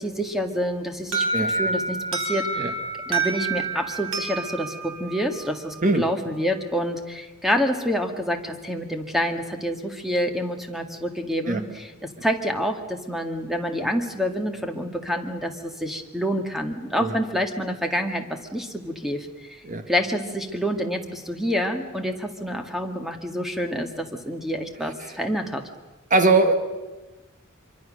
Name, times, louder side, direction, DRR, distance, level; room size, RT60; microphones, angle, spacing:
voice 1, 0.0-2.7 3.1-25.6, equal, ahead, 4 dB, 1.9 m, -27 dB
Alarm, 1.1-5.9, right 3 dB, 65° right, 4.4 m, -28 dB
voice 2, 26.1-26.5, right 3 dB, 40° right, 8 dB, 1.6 m, -21 dB
25.0 x 24.0 x 6.5 m, 1.2 s
head